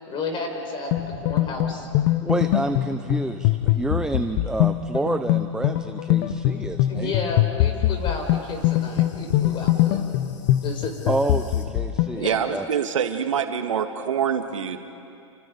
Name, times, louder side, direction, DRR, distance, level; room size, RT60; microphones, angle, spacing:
voice 1, 0.1-0.9 1.2-1.9 6.9-10.0 10.6-11.2 12.1-12.4, left 3 dB, 30° left, 3 dB, 5.1 m, -32 dB
sound 1, 0.9-12.2, left 14 dB, 50° left, 0.9 m, -23 dB
sound 2, 1.0-3.3 3.6-6.0 6.3-11.7, left 5 dB, 80° left, 3.8 m, -41 dB
voice 2, 2.2-7.1 11.1-12.2 12.5-12.6, right 2 dB, 5° right, 7 dB, 0.7 m, -28 dB
voice 3, 12.2-14.8, right 8 dB, 85° right, 6 dB, 1.8 m, -25 dB
29.0 x 28.5 x 5.3 m, 2.5 s
hypercardioid pair, 125°, 16 cm